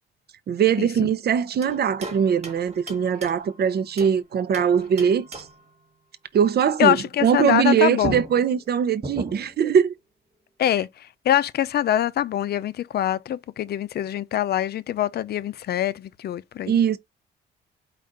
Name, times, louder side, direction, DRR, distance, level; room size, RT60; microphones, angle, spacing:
voice 1, 0.5-5.4 6.3-7.0 7.2-9.9 16.7-17.0, right 7 dB, 55° right, 0.6 m, -21 dB
sound 1, 1.6-4.2 4.5-5.7 7.6-7.7 8.0-9.6, right 2 dB, 35° right, 1.6 m, -37 dB
voice 2, 6.8-8.2 10.6-16.8, left 11 dB, 55° left, 0.5 m, -24 dB
4.9 x 2.5 x 3.9 m
cardioid pair, 90°, 20 cm